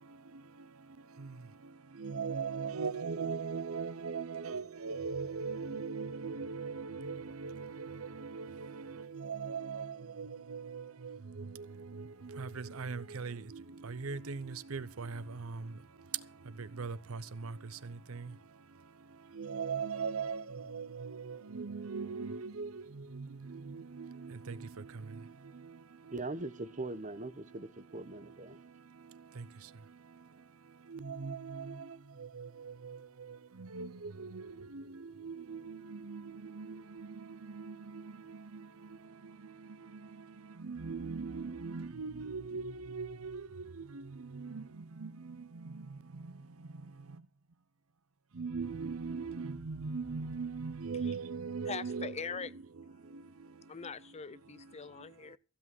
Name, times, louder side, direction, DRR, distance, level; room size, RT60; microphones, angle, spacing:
voice 1, 0.0-0.7 1.1-15.8 16.1-18.4 19.3-26.3 26.6-26.7 27.2-27.3 27.9-28.6 29.0-29.7 30.9-46.9 48.3-53.5 53.8-53.9 54.5-54.7, right 5 dB, 90° right, 0.8 m, -41 dB
voice 2, 26.1-28.6, right 2 dB, 35° right, 1.0 m, -41 dB
voice 3, 51.7-52.5 53.7-55.4, left 5 dB, 30° left, 0.5 m, -42 dB
15.5 x 8.6 x 6.1 m
head